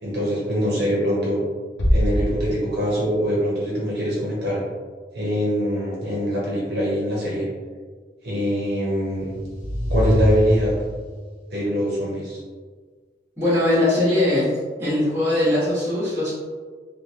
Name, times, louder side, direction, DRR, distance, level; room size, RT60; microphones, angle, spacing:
voice 1, 0.0-1.4 1.9-4.6 5.1-7.5 8.2-9.3 9.9-10.7 11.5-12.4, equal, 70° right, -5 dB, 0.8 m, -23 dB
sound 1, 1.8-3.7, equal, 75° left, 0.5 m, -24 dB
sound 2, 8.9-11.2, equal, 50° left, 0.9 m, -24 dB
voice 2, 13.4-14.5 14.8-16.3, left 1 dB, 15° right, -11 dB, 1.3 m, -20 dB
3.1 x 2.3 x 2.8 m, 1.5 s
head